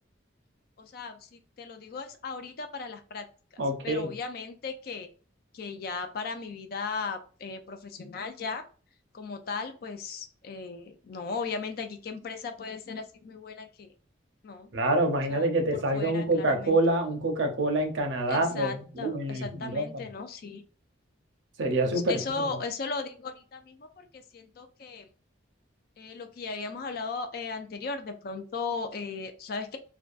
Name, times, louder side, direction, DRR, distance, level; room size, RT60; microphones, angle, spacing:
voice 1, 0.8-3.3 3.5-5.1 5.5-8.6 9.1-13.9 14.4-14.7 15.3-16.8 18.3-20.6 21.9-25.1 26.0-29.8, left 4 dB, 50° left, 8 dB, 0.3 m, -37 dB
voice 2, 3.6-4.1 14.7-20.0 21.6-22.4, right 1 dB, 70° right, 4 dB, 0.6 m, -27 dB
2.5 x 2.2 x 2.3 m, 0.39 s
head